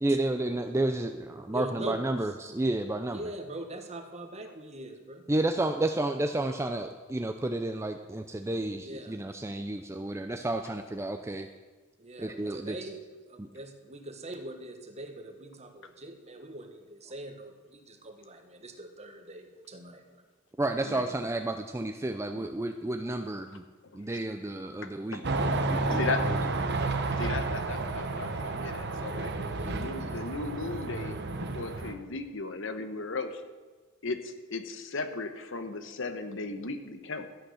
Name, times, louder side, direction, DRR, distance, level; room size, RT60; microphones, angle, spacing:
voice 1, 0.0-3.3 5.3-11.5 12.2-12.9 13.4-13.5 20.6-23.6 23.9-25.2 25.7-26.5, right 2 dB, 15° right, 6 dB, 0.5 m, -31 dB
voice 2, 1.5-2.1 3.1-5.2 8.8-9.2 12.0-13.0 13.3-20.2 29.5-30.1, right 1 dB, 35° right, 6 dB, 1.3 m, -42 dB
voice 3, 23.8-24.2 24.8-25.2 25.9-26.4 27.2-29.3 29.6-31.2 31.5-33.4 34.0-37.3, left 3 dB, 65° left, 8 dB, 1.1 m, -36 dB
sound 1, 25.2-31.9, right 3 dB, 55° right, 1.0 m, -31 dB
13.0 x 9.0 x 6.4 m, 1.3 s
head